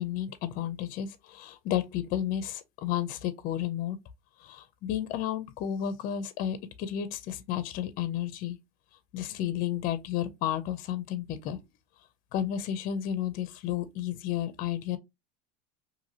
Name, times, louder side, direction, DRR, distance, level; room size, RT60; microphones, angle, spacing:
voice 1, 0.0-4.0 4.4-8.6 9.1-11.6 12.3-15.0, left 10 dB, 45° left, 0.5 m, -32 dB
2.7 x 2.6 x 2.7 m
supercardioid pair, 135°, 20 cm